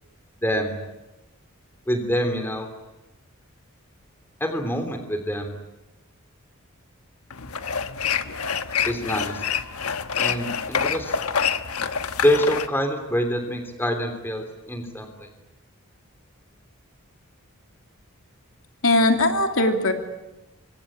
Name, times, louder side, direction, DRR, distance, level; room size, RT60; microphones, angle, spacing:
voice 1, 0.4-0.7 1.9-2.7 4.4-5.5 8.8-9.5 10.2-11.2 12.2-15.3, equal, 10° left, 6 dB, 3.3 m, -26 dB
sound 1, 7.3-12.7, left 7 dB, 85° left, 1.3 m, -27 dB
voice 2, 18.8-19.9, left 2 dB, 65° left, 4 dB, 2.8 m, -19 dB
26.5 x 24.0 x 8.8 m, 1.1 s
head